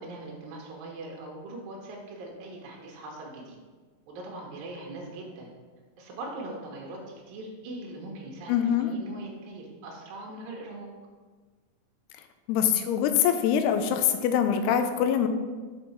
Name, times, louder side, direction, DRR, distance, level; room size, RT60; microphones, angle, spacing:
voice 1, 0.0-3.6 4.1-5.5 6.0-10.9, right 2 dB, 75° right, -1 dB, 2.6 m, -41 dB
voice 2, 8.5-8.9 12.5-15.3, left 8 dB, 90° left, 7 dB, 2.6 m, -24 dB
7.1 x 4.3 x 4.3 m, 1.4 s
omnidirectional pair, 4.5 m